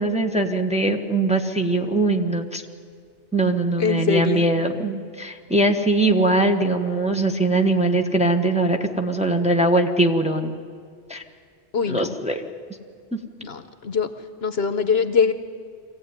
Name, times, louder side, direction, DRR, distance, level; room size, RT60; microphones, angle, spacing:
voice 1, 0.0-2.6 3.3-10.5 11.1-11.2 11.9-12.4 13.1-13.2, right 2 dB, 5° right, 3 dB, 1.1 m, -21 dB
voice 2, 3.8-4.5 11.7-12.1 13.4-14.1 14.4-15.3, left 5 dB, 60° left, 10 dB, 1.1 m, -22 dB
24.0 x 15.5 x 9.5 m, 2.1 s
omnidirectional pair, 1.2 m